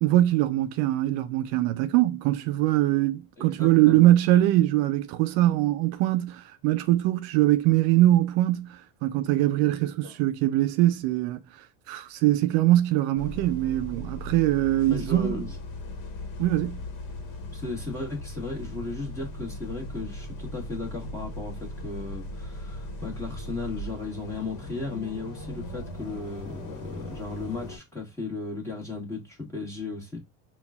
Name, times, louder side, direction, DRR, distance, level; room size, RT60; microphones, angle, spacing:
voice 1, 0.0-11.4 11.9-15.4 16.4-16.8, right 15 dB, 70° right, 0.5 m, -22 dB
voice 2, 3.4-4.1 9.6-10.1 14.9-15.5 17.5-30.2, left 3 dB, 10° left, 1.3 m, -36 dB
sound 1, 13.2-27.8, left 1 dB, 65° left, 1.1 m, -38 dB
5.6 x 2.3 x 2.3 m
cardioid pair, 145°, 38 cm